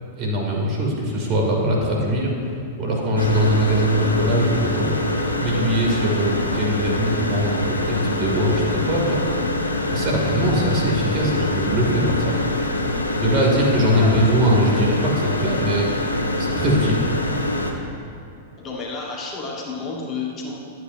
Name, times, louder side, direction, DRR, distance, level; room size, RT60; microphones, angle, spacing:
voice 1, 0.2-2.3 2.8-9.2 9.9-12.4 13.1-15.9 16.4-17.1, equal, 40° right, -2 dB, 2.1 m, -21 dB
sound 1, 3.2-17.7, left 2 dB, 85° left, 0.7 m, -25 dB
voice 2, 13.9-14.2 18.6-20.6, left 4 dB, 30° left, -2 dB, 1.3 m, -31 dB
11.0 x 8.0 x 2.6 m, 2.6 s
figure-of-eight pair, 100°, 0 cm